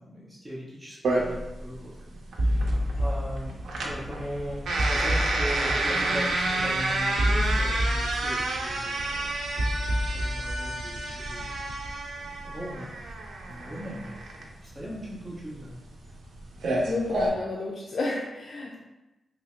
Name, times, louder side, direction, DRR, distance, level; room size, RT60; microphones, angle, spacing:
voice 1, 0.0-2.7 2.9-3.6 3.8-11.5 12.2-14.2 14.6-15.8, equal, 15° right, -7 dB, 0.8 m, -39 dB
sound 1, 1.0-17.3, right 2 dB, 90° right, 0.5 m, -30 dB
sound 2, 2.4-11.9, equal, 70° right, 0.8 m, -29 dB
voice 2, 16.8-18.8, left 2 dB, 60° left, -2 dB, 0.4 m, -31 dB
3.4 x 2.0 x 4.2 m, 1.0 s
wide cardioid pair, 115°, 0 cm